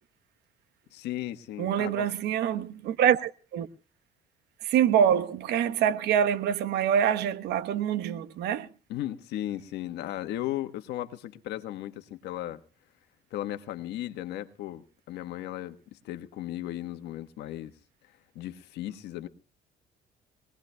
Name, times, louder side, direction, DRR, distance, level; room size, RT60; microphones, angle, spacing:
voice 1, 0.9-2.1 8.9-12.6 13.3-17.7 18.3-19.3, left 13 dB, 80° left, 1.3 m, -36 dB
voice 2, 1.6-3.7 4.6-8.7, right 9 dB, 75° right, 1.1 m, -25 dB
23.5 x 19.5 x 2.2 m
cardioid pair, 110°, 17 cm